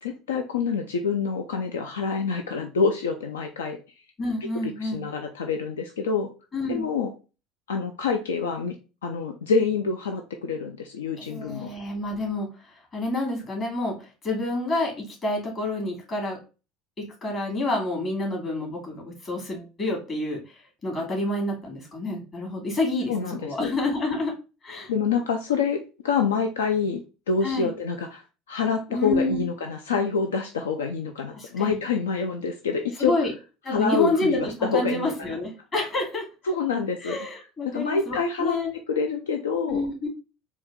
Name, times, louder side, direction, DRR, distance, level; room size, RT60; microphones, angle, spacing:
voice 1, 0.0-3.8 4.8-6.3 6.7-7.1 7.7-8.7 9.0-11.7 23.1-23.7 24.9-27.0 27.3-28.2 28.5-33.3 33.7-35.4 36.5-37.3 37.6-38.6 38.9-39.8, left 5 dB, 80° left, 6 dB, 0.4 m, -26 dB
voice 2, 4.2-5.0 6.5-6.8 11.2-12.5 12.9-16.4 17.0-24.3 24.6-24.9 27.4-27.7 28.9-29.5 31.3-31.8 33.0-33.3 33.6-36.3 37.0-38.7 39.7-40.1, left 2 dB, 35° left, 0 dB, 2.4 m, -28 dB
4.2 x 2.4 x 3.7 m, 0.32 s
hypercardioid pair, 70°, 0 cm